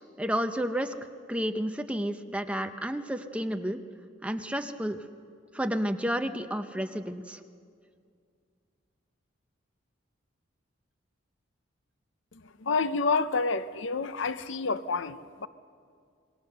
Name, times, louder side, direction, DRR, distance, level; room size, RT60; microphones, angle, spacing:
voice 1, 0.2-0.9 1.3-3.8 4.2-5.0 5.5-7.4, equal, 5° right, 0.7 m, -31 dB
voice 2, 12.3-15.5, left 4 dB, 65° left, 0.7 m, -29 dB
27.0 x 21.0 x 6.7 m
head